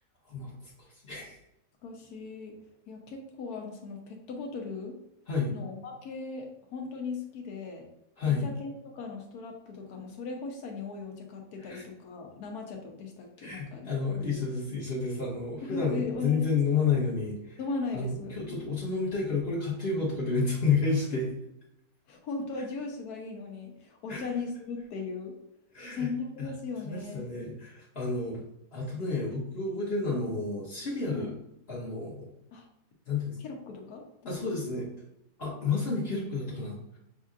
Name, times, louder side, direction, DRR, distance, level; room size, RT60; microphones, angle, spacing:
voice 1, 1.0-1.4 5.3-5.5 8.2-8.5 11.6-11.8 13.4-17.6 17.9-21.3 24.1-24.3 25.7-26.1 26.4-26.5 26.8-28.4 28.7-31.3 31.7-32.3 33.1-33.4 34.2-34.9 35.4-36.8, left 4 dB, 45° left, -5 dB, 1.1 m, -30 dB
voice 2, 1.8-2.6 2.9-5.0 5.5-7.9 8.3-14.5 15.6-16.5 16.7-16.8 17.6-18.6 20.9-21.0 22.1-25.4 25.9-27.3 31.1-31.3 32.5-32.6 33.4-34.3, left 4 dB, 90° left, 2 dB, 1.4 m, -38 dB
6.1 x 2.7 x 2.4 m, 0.86 s
omnidirectional pair, 1.6 m